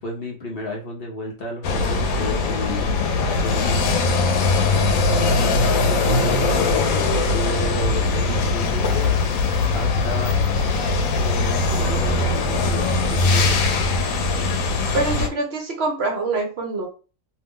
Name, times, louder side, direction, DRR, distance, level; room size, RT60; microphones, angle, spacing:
voice 1, 0.0-2.9 3.2-4.2 5.9-9.1 9.7-10.3 11.2-13.7, left 1 dB, 55° left, 0 dB, 0.7 m, -32 dB
sound 1, 1.6-15.3, left 3 dB, 85° left, 1.0 m, -20 dB
voice 2, 5.0-6.2 14.9-16.9, right 3 dB, 60° right, 2 dB, 0.8 m, -26 dB
2.6 x 2.0 x 3.5 m, 0.34 s
omnidirectional pair, 1.4 m